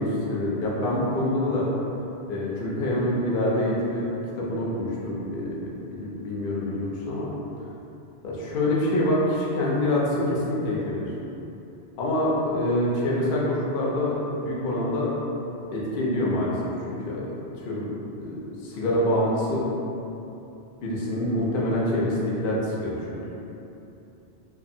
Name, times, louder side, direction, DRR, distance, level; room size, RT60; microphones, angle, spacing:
voice 1, 0.0-1.7 2.3-4.1 4.3-5.6 5.9-7.3 8.2-11.1 12.0-15.1 15.7-16.5 16.8-17.3 17.6-17.9 18.2-19.6 20.8-23.3, left 1 dB, 60° left, -5 dB, 0.7 m, -26 dB
2.5 x 2.4 x 2.6 m, 2.9 s
omnidirectional pair, 1.1 m